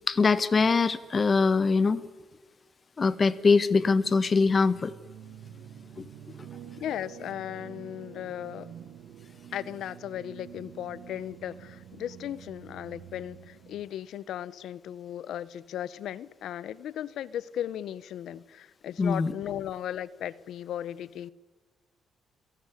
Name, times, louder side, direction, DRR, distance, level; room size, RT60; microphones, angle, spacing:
voice 1, 0.1-2.0 3.0-4.9 6.0-6.1 19.0-19.3, left 4 dB, 35° left, 15 dB, 1.4 m, -23 dB
sound 1, 3.9-13.8, right 9 dB, 75° right, 1.8 m, -48 dB
voice 2, 6.8-8.7 9.5-21.3, left 11 dB, 75° left, 19 dB, 0.9 m, -36 dB
29.0 x 17.0 x 10.0 m, 1.3 s
cardioid pair, 90°, 0 cm